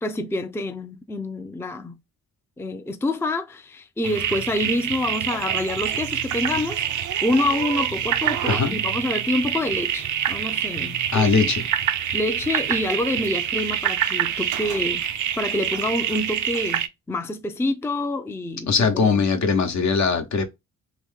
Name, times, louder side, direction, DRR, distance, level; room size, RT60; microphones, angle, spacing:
voice 1, 0.0-2.0 2.6-6.8 7.2-11.4 12.1-15.1 15.4-18.7, left 2 dB, 10° left, 0.5 m, -27 dB
sound 1, 4.0-16.9, right 10 dB, 70° right, 0.6 m, -26 dB
voice 2, 8.5-8.8 11.1-11.6 18.7-20.4, left 5 dB, 60° left, 1.0 m, -20 dB
2.9 x 2.7 x 3.6 m
supercardioid pair, 60°, 31 cm